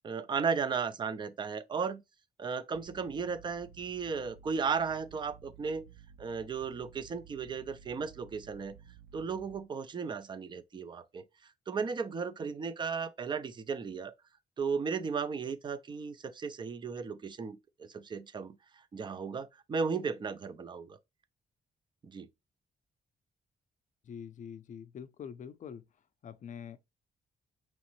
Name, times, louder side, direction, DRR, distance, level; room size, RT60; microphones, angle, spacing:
voice 1, 0.0-2.0 2.4-5.9 6.2-8.8 9.1-11.2 11.7-14.1 14.6-18.6 18.9-21.0 22.0-22.3, right 5 dB, 25° right, 0.4 m, -35 dB
sound 1, 2.7-9.6, right 8 dB, 90° right, 0.5 m, -55 dB
voice 2, 24.0-25.8 26.2-26.8, left 7 dB, 50° left, 0.4 m, -45 dB
4.9 x 3.0 x 3.0 m
wide cardioid pair, 155°, 17 cm